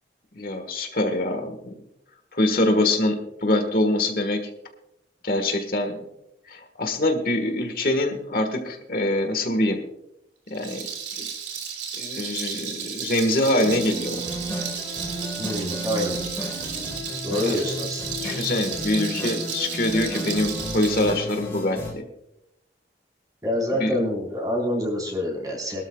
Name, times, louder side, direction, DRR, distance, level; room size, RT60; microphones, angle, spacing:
voice 1, 0.3-1.8 2.3-4.5 5.2-6.1 6.5-9.8 10.5-10.9 11.2-11.3 12.0-14.2 17.5-17.6 18.2-22.0 23.8-24.0, left 1 dB, 55° left, 6 dB, 1.6 m, -24 dB
Rattle, 10.5-21.1, right 7 dB, 90° right, 3.3 m, -33 dB
sound 1, 13.6-21.9, equal, 15° left, 3.8 m, -33 dB
voice 2, 15.4-16.2 17.2-18.0 23.4-25.8, left 1 dB, 20° right, 0 dB, 4.3 m, -26 dB
22.5 x 13.0 x 2.3 m, 0.83 s
head